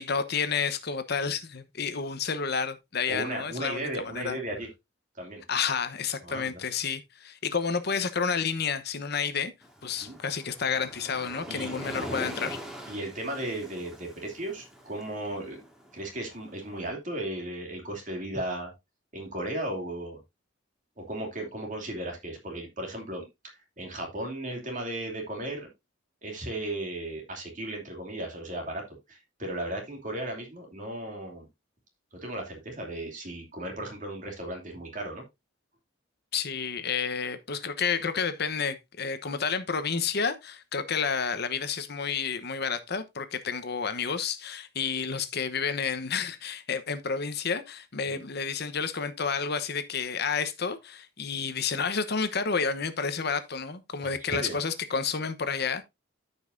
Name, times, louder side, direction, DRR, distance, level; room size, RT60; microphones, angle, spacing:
voice 1, 0.0-4.4 5.5-9.5 9.8-12.6 36.3-55.8, left 5 dB, 55° left, 1.0 m, -30 dB
voice 2, 3.1-4.7 5.1-5.4 6.2-6.6 10.0-10.2 11.5-11.7 12.9-15.6 15.9-18.7 19.1-20.2 21.0-23.2 23.8-25.7 26.2-31.5 32.2-35.2 48.1-48.2 54.0-54.5, right 1 dB, 40° right, 2.8 m, -35 dB
Waves surf, 9.6-16.7, equal, 5° right, 1.9 m, -42 dB
13.5 x 5.5 x 2.6 m
head